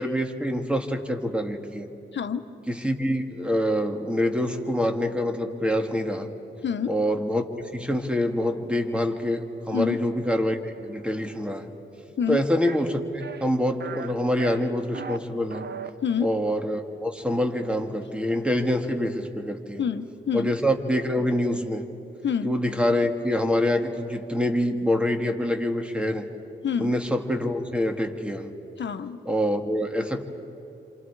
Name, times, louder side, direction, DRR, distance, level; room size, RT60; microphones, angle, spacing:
voice 1, 0.0-1.9 2.7-6.3 6.9-11.7 12.3-15.6 16.2-19.8 20.3-21.8 22.4-26.3 26.8-28.5 29.3-30.2, equal, 5° right, 5 dB, 2.2 m, -26 dB
voice 2, 2.1-2.4 6.6-7.0 9.7-10.0 12.2-12.4 16.0-16.3 19.8-20.5 22.2-22.5 26.6-27.0 28.8-29.2, left 7 dB, 65° left, 9 dB, 1.2 m, -27 dB
sound 1, 12.6-12.8 13.2-13.5 13.8-14.1 14.4-15.2 15.5-15.9, right 5 dB, 60° right, 1.1 m, -36 dB
28.5 x 27.0 x 4.9 m, 3.0 s
cardioid pair, 65°, 20 cm